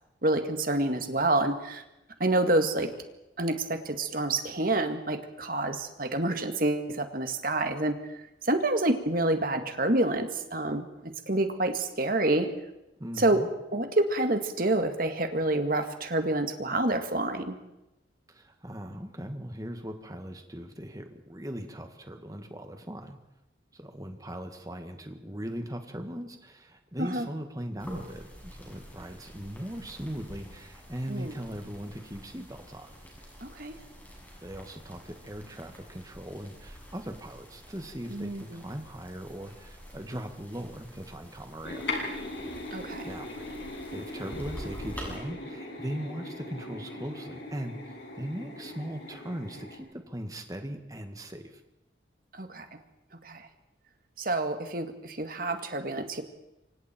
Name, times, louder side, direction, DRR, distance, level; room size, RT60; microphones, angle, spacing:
voice 1, 0.2-1.8 2.2-2.9 3.4-8.0 8.4-12.5 13.2-13.4 13.7-17.6 27.0-27.2 31.1-31.3 33.4-33.7 38.1-38.6 42.7-43.0 52.3-52.7 53.2-53.5 54.2-56.2, right 2 dB, 50° right, 7 dB, 2.1 m, -28 dB
voice 2, 13.0-13.5 18.3-23.2 23.7-32.9 34.4-41.9 43.0-43.5 43.9-51.6, equal, 20° right, 6 dB, 1.9 m, -39 dB
sound 1, 27.8-45.2, equal, 10° left, 6.8 m, -47 dB
sound 2, 41.6-49.8, left 2 dB, 65° left, 6.4 m, -39 dB
28.5 x 25.0 x 4.5 m, 0.91 s
head